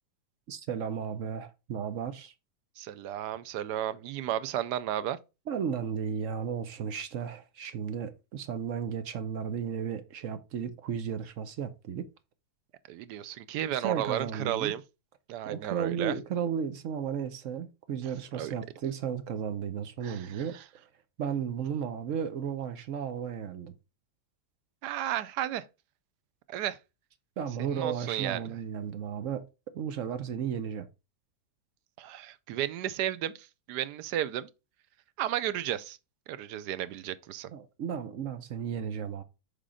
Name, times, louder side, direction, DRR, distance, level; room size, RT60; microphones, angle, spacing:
voice 1, 0.5-2.3 5.5-12.1 13.7-14.7 15.5-20.6 21.2-23.7 27.4-29.5 29.7-30.9 37.5-39.2, right 7 dB, 60° right, 1.0 m, -34 dB
voice 2, 2.8-5.2 12.9-14.8 15.3-16.1 18.3-18.5 20.0-20.3 20.5-20.6 24.8-25.6 26.5-26.8 27.7-28.5 32.0-34.5 35.2-36.0 36.3-37.5, right 11 dB, 85° right, 1.2 m, -33 dB
6.6 x 3.7 x 4.9 m
omnidirectional pair, 1.8 m